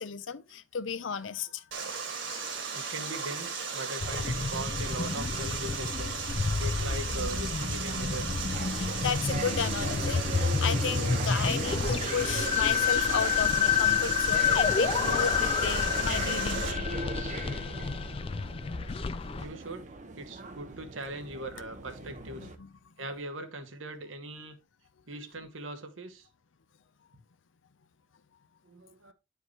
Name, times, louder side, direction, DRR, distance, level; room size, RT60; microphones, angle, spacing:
voice 1, 0.0-1.6 8.7-16.7 22.4-22.7, left 6 dB, 75° left, 0.6 m, -34 dB
Water, 1.7-16.7, right 5 dB, 60° right, 1.9 m, -36 dB
voice 2, 2.7-6.2 6.6-8.3 19.4-19.9 20.2-22.5 23.0-24.6 25.1-26.3 28.6-29.1, right 2 dB, 80° right, 1.1 m, -40 dB
sound 1, 4.0-19.4, left 6 dB, 30° left, 0.3 m, -29 dB
sound 2, 7.5-22.5, right 3 dB, 40° right, 0.7 m, -40 dB
9.9 x 4.7 x 3.2 m
head